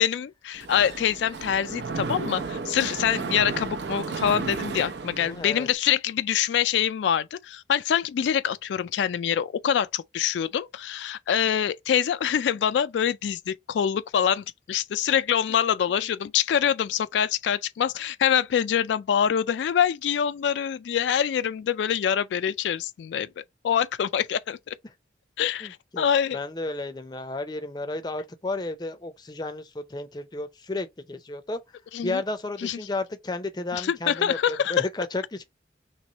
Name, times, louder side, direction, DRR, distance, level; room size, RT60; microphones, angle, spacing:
voice 1, 0.0-24.7 25.4-26.4 31.9-32.2 32.6-32.8 33.7-34.9, left 9 dB, 80° left, 0.3 m, -25 dB
Mechanisms, 0.5-5.7, right 4 dB, 75° right, 0.6 m, -33 dB
voice 2, 5.2-5.7 25.6-26.1 26.3-31.6 32.0-35.4, left 2 dB, 25° left, 0.5 m, -33 dB
3.1 x 3.0 x 4.0 m
head